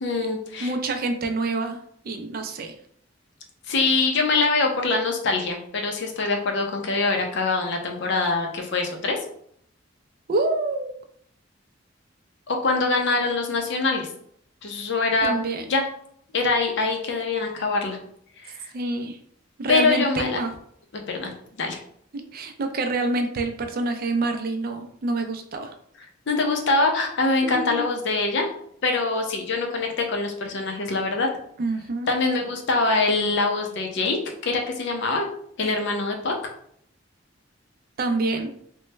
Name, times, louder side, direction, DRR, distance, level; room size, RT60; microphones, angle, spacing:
voice 1, 0.0-0.7 3.7-9.2 12.5-14.1 14.6-15.3 15.7-15.8 16.3-18.0 18.4-18.6 19.7-20.4 20.9-21.3 21.6-21.8 26.3-28.5 28.8-31.3 32.1-35.3 35.6-36.3, left 3 dB, 65° left, 2 dB, 0.6 m, -24 dB
voice 2, 0.6-1.8 2.0-2.7 10.3-10.9 15.2-15.6 18.7-19.2 19.6-20.5 22.1-25.7 27.4-27.9 31.6-32.1 38.0-38.5, right 2 dB, 50° right, 6 dB, 0.4 m, -27 dB
3.0 x 2.2 x 3.2 m, 0.67 s
head